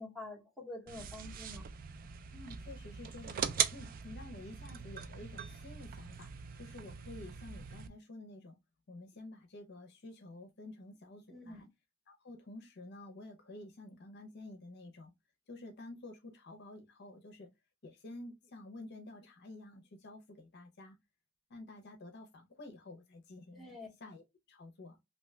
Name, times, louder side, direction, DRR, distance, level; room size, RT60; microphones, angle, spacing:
voice 1, 0.0-1.7 11.3-11.7 23.5-23.9, left 2 dB, ahead, 1.0 m, -47 dB
sound 1, 0.9-7.9, right 8 dB, 45° right, 0.3 m, -40 dB
voice 2, 2.3-3.4 3.7-6.3 6.6-8.6 8.9-11.7 12.1-15.1 15.5-17.5 17.8-21.0 21.5-24.2 24.5-25.0, left 2 dB, 55° left, 0.7 m, -50 dB
2.7 x 2.3 x 3.1 m
head